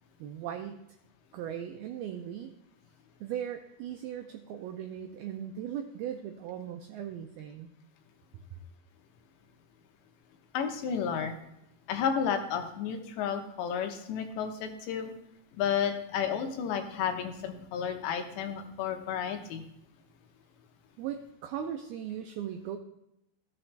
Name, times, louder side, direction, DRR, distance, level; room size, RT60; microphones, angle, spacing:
voice 1, 0.2-0.8 1.3-2.5 3.2-7.7 21.0-22.8, right 9 dB, 90° right, 5 dB, 2.1 m, -38 dB
voice 2, 10.5-11.4 11.9-15.1 15.6-19.6, left 7 dB, 80° left, 5 dB, 3.2 m, -32 dB
15.5 x 6.9 x 3.3 m, 0.82 s
omnidirectional pair, 5.1 m